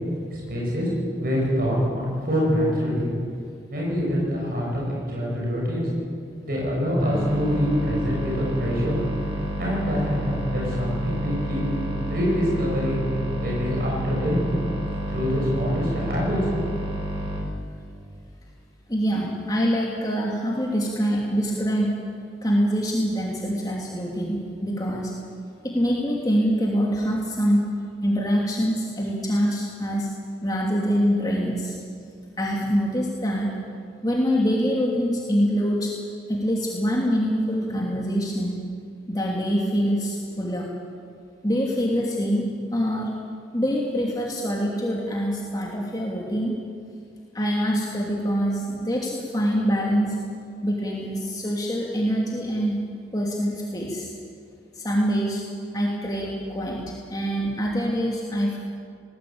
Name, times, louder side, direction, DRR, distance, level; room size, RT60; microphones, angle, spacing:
voice 1, 0.3-0.9 1.2-3.1 3.7-5.9 6.4-9.0 9.6-11.7 12.1-13.0 13.4-14.4 15.1-16.5, equal, 55° right, -3 dB, 7.5 m, -25 dB
sound 1, 7.0-17.4, right 1 dB, 30° right, 5.3 m, -30 dB
voice 2, 18.9-22.0 22.4-25.1 25.6-27.6 28.0-30.1 30.4-31.7 32.4-33.5 34.0-35.9 36.3-38.6 39.1-40.6 41.4-43.1 43.5-46.5 47.3-50.2 50.6-52.7 53.1-54.1 54.7-55.4 55.7-56.8 57.1-58.6, equal, 20° left, -3 dB, 2.8 m, -24 dB
20.5 x 18.5 x 8.8 m, 2.3 s
head